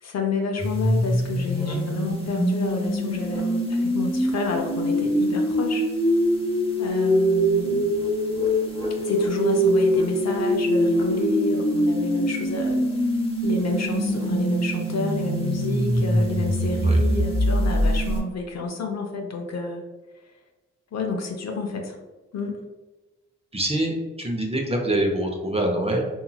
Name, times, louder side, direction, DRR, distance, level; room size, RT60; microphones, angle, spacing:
voice 1, 0.0-5.8 6.8-7.9 9.0-12.8 13.4-19.8 20.9-22.0 22.3-22.6, left 3 dB, 55° left, 2 dB, 0.6 m, -29 dB
sound 1, 0.6-18.2, equal, 15° left, 1.1 m, -23 dB
voice 2, 23.5-26.1, right 1 dB, 20° right, 1 dB, 0.7 m, -25 dB
2.8 x 2.8 x 2.3 m, 1.2 s
supercardioid pair, 40°, 32 cm